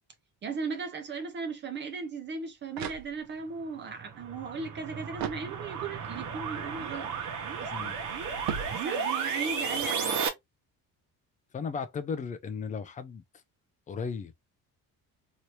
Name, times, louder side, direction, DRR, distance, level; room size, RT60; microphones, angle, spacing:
voice 1, 0.4-7.1 7.6-7.9 8.7-10.2, right 4 dB, 30° right, 0.6 m, -37 dB
sound 1, 2.3-3.6 5.1-6.0 8.4-9.4, right 8 dB, 85° right, 0.7 m, -39 dB
sound 2, 3.8-10.3, right 6 dB, 60° right, 1.1 m, -34 dB
voice 2, 11.5-13.2 13.9-14.3, left 5 dB, 25° left, 0.4 m, -35 dB
2.9 x 2.7 x 3.0 m
cardioid pair, 175°, 34 cm